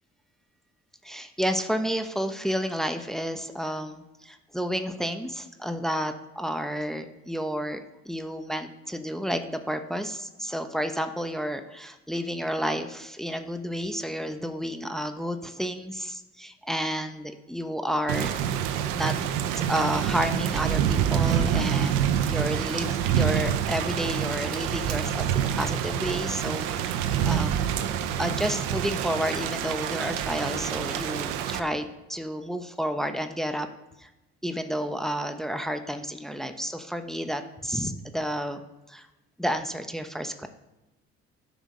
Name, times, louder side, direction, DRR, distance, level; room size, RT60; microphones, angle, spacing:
voice 1, 1.0-7.8 8.0-18.4 18.9-19.2 19.6-27.5 28.2-33.7 34.0-34.1 34.4-38.6 38.9-39.1 39.4-40.5, equal, ahead, 7 dB, 1.0 m, -31 dB
Thunder / Rain, 18.1-31.6, right 9 dB, 90° right, 0.7 m, -27 dB
11.5 x 5.2 x 6.5 m, 1.0 s
supercardioid pair, 60°, 31 cm